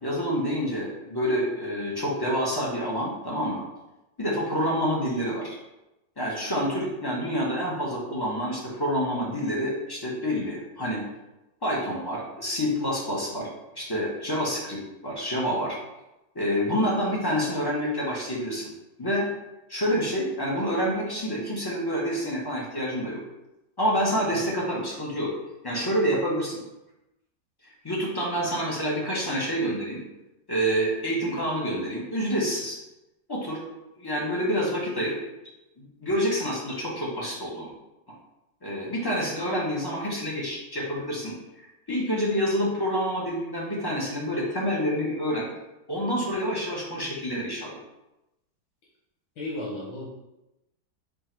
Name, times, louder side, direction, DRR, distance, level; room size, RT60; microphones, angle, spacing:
voice 1, 0.0-3.6 4.2-5.6 6.2-11.0 11.6-13.5 13.7-15.8 16.3-18.7 19.0-19.3 19.7-23.2 23.8-25.3 25.6-26.6 27.8-30.0 30.5-32.8 33.3-33.6 34.0-35.1 35.8-37.7 38.6-41.3 41.9-45.5 45.9-47.8, equal, 25° left, -4 dB, 0.5 m, -27 dB
voice 2, 49.4-50.1, left 1 dB, 90° left, -4 dB, 1.6 m, -34 dB
4.6 x 2.5 x 4.3 m, 0.95 s
omnidirectional pair, 1.9 m